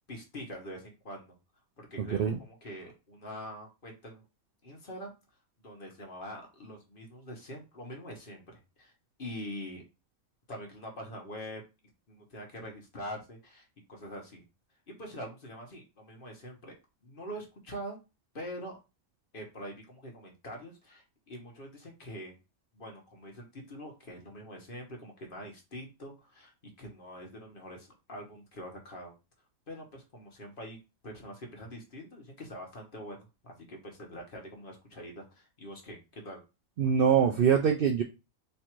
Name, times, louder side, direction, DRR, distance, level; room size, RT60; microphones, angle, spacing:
voice 1, 0.1-1.4 1.8-4.3 4.6-5.1 5.6-8.9 9.2-9.8 10.5-11.6 12.1-14.4 14.9-16.7 17.0-18.0 18.3-18.8 19.3-22.3 22.7-26.5 26.8-29.1 29.7-30.8 31.0-36.4, equal, 40° left, 1 dB, 1.1 m, -44 dB
voice 2, 2.0-2.4 36.8-38.0, right 7 dB, 70° right, 3 dB, 0.5 m, -24 dB
3.3 x 2.5 x 4.4 m, 0.27 s
omnidirectional pair, 1.5 m